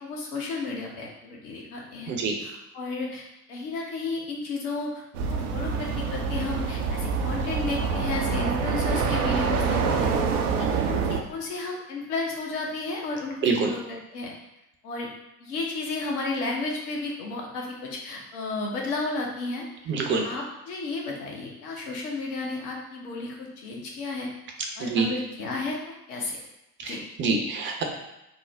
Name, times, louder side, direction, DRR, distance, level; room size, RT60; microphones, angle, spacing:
voice 1, 0.0-2.1 2.4-5.0 5.3-13.8 14.1-14.3 14.8-15.1 15.4-19.6 20.2-24.3 24.8-26.4 26.8-27.0, left 3 dB, 65° left, -1 dB, 1.0 m, -33 dB
voice 2, 2.1-2.4 13.4-13.7 19.9-20.3 24.8-25.1 26.8-27.8, right 4 dB, 25° right, 1 dB, 0.5 m, -26 dB
sound 1, 5.1-11.2, right 5 dB, 70° right, 0.6 m, -26 dB
3.6 x 2.0 x 3.2 m, 0.91 s
figure-of-eight pair, 70°, 48 cm